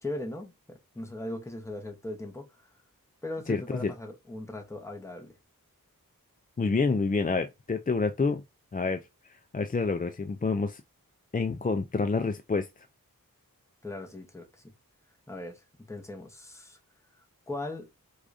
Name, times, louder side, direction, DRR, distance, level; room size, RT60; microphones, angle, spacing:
voice 1, 0.0-2.7 3.2-5.4 13.8-14.7 15.3-16.8 17.5-17.9, left 2 dB, 10° left, 0.9 m, -39 dB
voice 2, 3.5-3.9 6.6-8.4 8.7-9.0 9.5-10.8 11.3-12.7, left 4 dB, 25° left, 0.3 m, -28 dB
4.8 x 2.4 x 2.5 m
wide cardioid pair, 55°, 35 cm